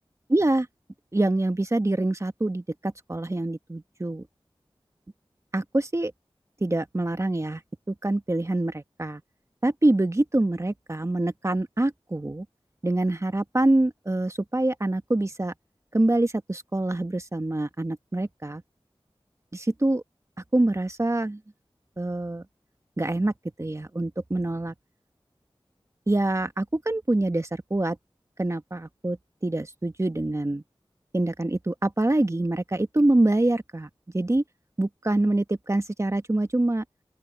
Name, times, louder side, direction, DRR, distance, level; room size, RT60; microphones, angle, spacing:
voice 1, 0.3-0.7 1.1-4.2 5.5-6.1 6.6-7.6 7.9-9.2 9.6-12.4 12.8-15.5 15.9-18.6 19.5-20.0 20.5-21.4 22.0-22.4 23.0-23.3 23.6-24.7 26.1-28.0 28.4-29.2 29.4-30.6 31.1-33.9 34.1-34.4 34.8-36.8, right 2 dB, 30° right, 1.4 m, -25 dB
open air
wide cardioid pair, 60°, 10 cm